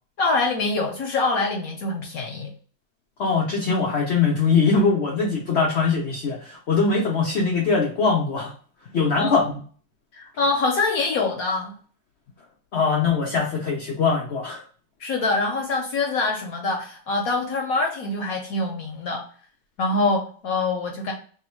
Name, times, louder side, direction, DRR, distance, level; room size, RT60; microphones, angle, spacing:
voice 1, 0.2-2.5 9.2-9.3 10.1-11.7 15.0-19.2 19.8-21.1, left 3 dB, 65° left, 2 dB, 0.9 m, -24 dB
voice 2, 3.2-8.5 8.9-9.5 12.7-14.6, left 4 dB, 90° left, -1 dB, 0.5 m, -22 dB
3.5 x 2.2 x 4.4 m, 0.43 s
omnidirectional pair, 2.0 m